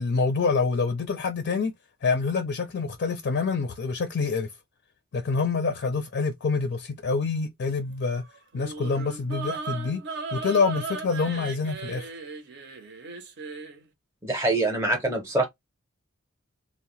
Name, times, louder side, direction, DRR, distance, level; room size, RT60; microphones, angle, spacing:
voice 1, 0.0-1.7 2.0-4.5 5.1-8.2 8.5-10.0 10.3-12.1, left 4 dB, 55° left, 0.4 m, -26 dB
sound 1, 8.5-13.8, right 4 dB, 55° right, 0.6 m, -37 dB
voice 2, 14.2-15.4, right 2 dB, 15° right, 0.6 m, -24 dB
2.7 x 2.0 x 2.9 m
head